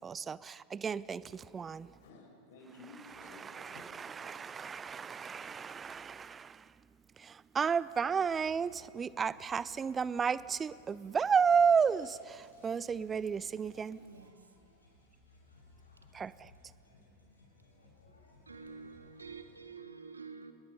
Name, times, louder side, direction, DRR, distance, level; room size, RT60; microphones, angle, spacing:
voice 1, 0.0-1.9 3.4-6.7 7.2-14.0 16.1-16.5, right 6 dB, 20° right, 0.6 m, -32 dB
voice 2, 1.7-4.1, left 2 dB, 55° left, 5.1 m, -54 dB
sound 1, 8.3-19.7, left 2 dB, 80° left, 6.2 m, -63 dB
voice 3, 14.0-14.6 18.5-20.5, right 5 dB, 75° right, 1.7 m, -48 dB
28.5 x 20.5 x 5.5 m
figure-of-eight pair, 90°, 0 cm